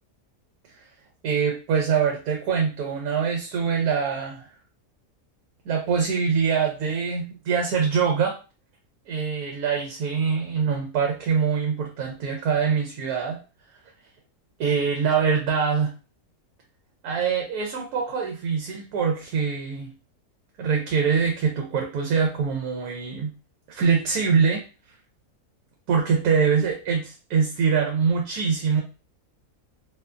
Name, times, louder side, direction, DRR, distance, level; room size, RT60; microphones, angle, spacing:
voice 1, 1.2-4.5 5.7-8.3 9.1-13.4 14.6-15.9 17.0-19.9 20.6-23.3 23.7-24.6 25.9-28.8, right 6 dB, 85° right, 1 dB, 1.1 m, -24 dB
2.7 x 2.1 x 2.4 m, 0.32 s
omnidirectional pair, 1.6 m